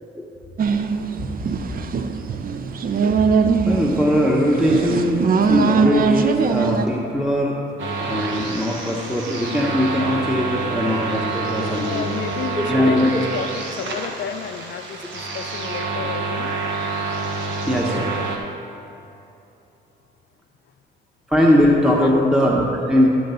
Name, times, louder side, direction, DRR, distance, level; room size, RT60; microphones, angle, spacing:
sound 1, 0.6-6.9, right 5 dB, 45° right, 0.5 m, -21 dB
voice 1, 3.6-7.6 7.8-12.0 12.7-13.2 17.7-18.1 21.3-23.2, left 1 dB, 5° right, -2 dB, 0.9 m, -20 dB
sound 2, 7.8-18.4, right 3 dB, 75° right, 1.2 m, -28 dB
voice 2, 11.8-16.5 22.0-22.4, left 8 dB, 65° left, 9 dB, 0.5 m, -32 dB
12.0 x 3.9 x 6.8 m, 2.9 s
cardioid pair, 90°, 20 cm